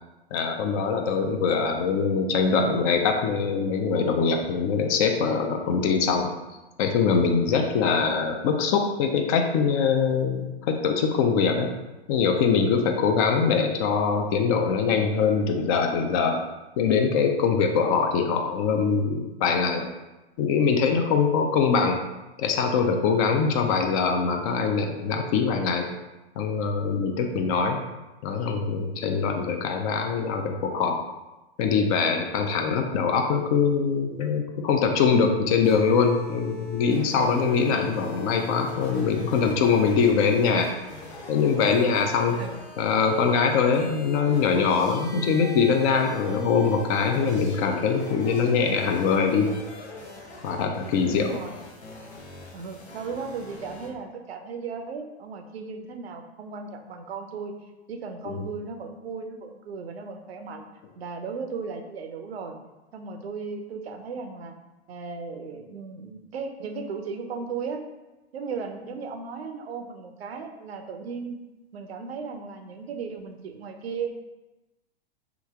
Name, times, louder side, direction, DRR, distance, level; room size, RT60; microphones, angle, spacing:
voice 1, 0.3-6.3 6.8-11.7 12.1-16.4 16.8-19.9 20.4-22.0 22.4-25.9 26.4-27.8 28.2-31.0 31.6-40.7 41.3-42.4 42.8-49.6 50.4-51.4 58.3-58.5, left 5 dB, 35° left, 4 dB, 0.4 m, -23 dB
sound 1, 35.6-53.9, left 3 dB, 80° left, 0.8 m, -41 dB
voice 2, 42.3-42.6 51.1-51.6 52.5-57.5 57.9-60.7 61.0-62.5 62.9-64.5 64.9-67.8 68.3-71.4 71.7-74.2, right 5 dB, 70° right, 5 dB, 0.6 m, -36 dB
3.0 x 2.4 x 3.5 m, 1.1 s
figure-of-eight pair, 100°, 33 cm